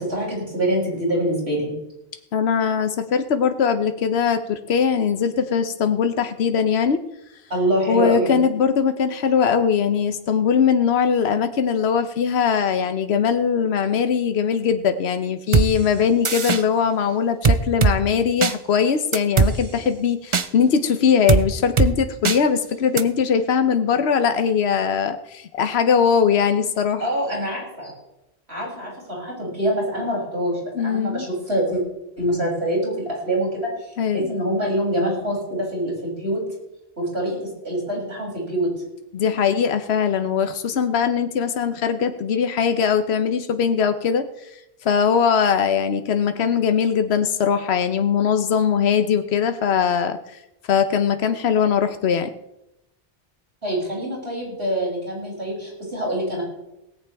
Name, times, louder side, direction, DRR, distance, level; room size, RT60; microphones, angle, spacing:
voice 1, 0.0-1.7 7.5-8.4 27.0-27.9 28.5-31.8 32.2-36.4 37.0-38.7 53.6-56.4, right 1 dB, 80° right, -4 dB, 7.6 m, -25 dB
voice 2, 2.3-7.0 7.9-27.0 30.8-31.3 34.0-34.3 39.1-50.4 50.7-52.3, left 7 dB, 85° left, 9 dB, 1.1 m, -21 dB
sound 1, 15.5-15.7 16.2-16.6 17.4-17.9 18.4-18.5 19.1-19.5 20.3-20.5 21.3-21.4 21.8-21.9 22.2-22.4 23.0-23.1, right 4 dB, 35° right, 0.6 m, -17 dB
18.0 x 16.5 x 3.5 m, 0.90 s
omnidirectional pair, 1.0 m